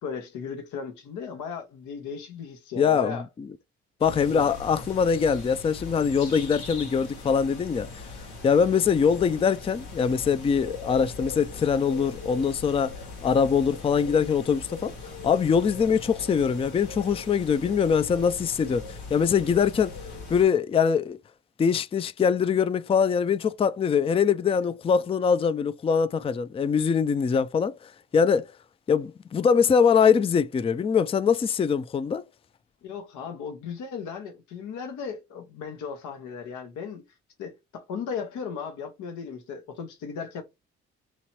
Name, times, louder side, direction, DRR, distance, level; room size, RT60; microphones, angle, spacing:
voice 1, 0.0-3.3 4.2-4.5 32.8-37.0 37.4-40.4, left 6 dB, 70° left, 0.9 m, -36 dB
voice 2, 2.8-3.2 4.0-8.0 8.4-12.9 13.2-14.9 15.2-19.9 20.3-21.2 21.6-27.8 28.1-28.5 28.9-32.2, left 6 dB, 20° left, 0.3 m, -23 dB
sound 1, 4.0-20.4, left 3 dB, 90° left, 1.1 m, -40 dB
3.0 x 2.9 x 4.2 m
hypercardioid pair, 50°, 31 cm